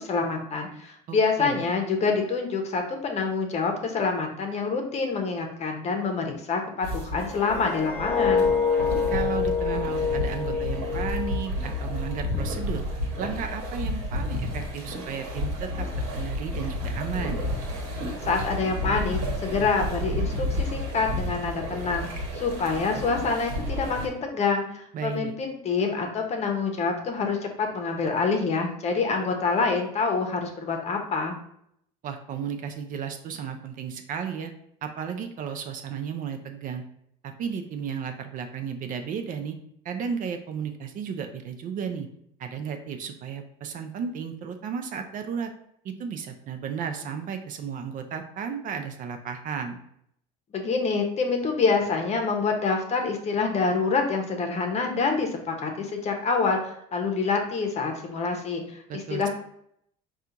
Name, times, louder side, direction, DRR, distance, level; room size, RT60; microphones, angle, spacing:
voice 1, 0.0-8.5 18.2-31.4 50.5-59.3, left 4 dB, 35° left, 3 dB, 0.8 m, -26 dB
voice 2, 1.1-1.6 9.1-12.8 13.2-17.4 24.9-25.3 32.0-34.5 34.8-36.8 37.2-39.6 39.8-42.1 42.4-45.5 45.8-49.8 58.9-59.3, right 7 dB, 50° right, 6 dB, 0.5 m, -34 dB
sound 1, 6.8-24.1, left 1 dB, 90° right, 1.1 m, -31 dB
sound 2, 7.1-12.2 12.5-12.9, left 5 dB, 10° left, 1.4 m, -27 dB
4.3 x 2.4 x 3.8 m, 0.72 s
supercardioid pair, 105°, 18 cm